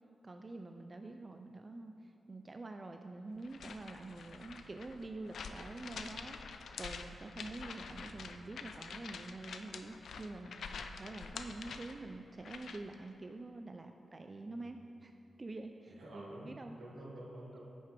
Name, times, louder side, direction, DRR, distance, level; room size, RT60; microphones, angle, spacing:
voice 1, 0.2-15.1 15.4-16.8, right 2 dB, 35° right, 5 dB, 0.4 m, -47 dB
sound 1, 3.4-13.0, left 5 dB, 80° left, 0.4 m, -47 dB
voice 2, 8.0-8.5 14.4-14.8 15.9-17.6, right 1 dB, 85° right, -5 dB, 1.9 m, -51 dB
9.4 x 6.6 x 3.3 m, 2.7 s
cardioid pair, 85°, 0 cm